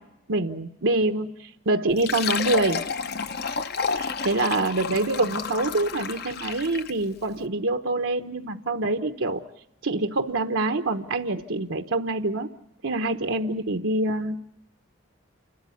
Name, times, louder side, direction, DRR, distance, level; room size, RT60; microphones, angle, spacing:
voice 1, 0.3-1.3 1.7-2.8 3.9-9.4 9.8-12.5 12.8-14.4, right 2 dB, 75° right, 5 dB, 1.0 m, -25 dB
Fill (with liquid), 1.9-7.0, left 5 dB, 50° left, 0.8 m, -30 dB
29.0 x 13.0 x 9.5 m, 0.87 s
head